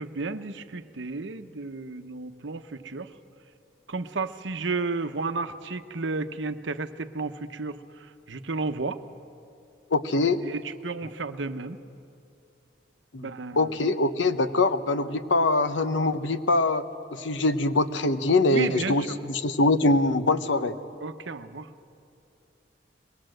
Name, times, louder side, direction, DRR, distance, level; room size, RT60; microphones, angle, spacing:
voice 1, 0.0-3.1 3.9-9.0 10.4-11.8 13.1-13.7 18.5-19.2 21.0-21.7, right 3 dB, 75° right, 9 dB, 0.9 m, -33 dB
voice 2, 9.9-10.4 13.1-16.9 17.1-20.8, left 2 dB, 80° left, 11 dB, 0.9 m, -23 dB
22.5 x 20.0 x 7.8 m, 2.5 s
head